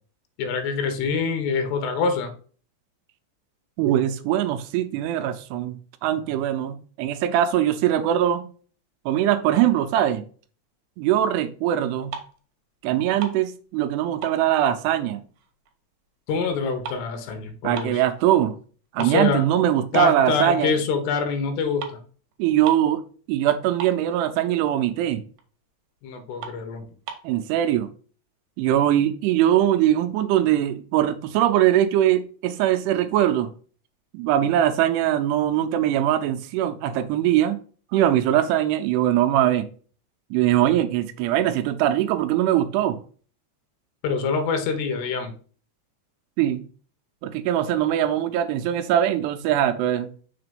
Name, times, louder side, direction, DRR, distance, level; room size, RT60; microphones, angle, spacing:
voice 1, 0.4-2.3 16.3-18.0 19.0-19.5 19.9-22.0 26.0-26.9 44.0-45.4, left 5 dB, 75° left, 3.1 m, -25 dB
voice 2, 3.8-5.8 6.0-8.5 9.1-10.3 11.0-12.1 12.8-15.2 17.6-18.6 18.9-20.7 22.4-23.0 23.3-25.2 27.2-27.9 28.6-33.5 34.1-37.6 37.9-39.7 40.3-43.0 46.4-46.6 47.2-50.1, right 11 dB, 80° right, 2.6 m, -21 dB
sound 1, 12.1-12.5 12.8-13.9 14.2-15.7 16.0-18.1 18.5-18.6 19.0-20.1 20.5-20.7 21.5-21.6 21.8-22.0 22.3-22.4 22.6-23.0 23.3-23.4 23.6-24.4 24.9-25.0 25.4-25.5 25.9-26.0 26.4-27.3, right 7 dB, 65° right, 2.3 m, -38 dB
6.8 x 3.7 x 5.2 m
omnidirectional pair, 5.0 m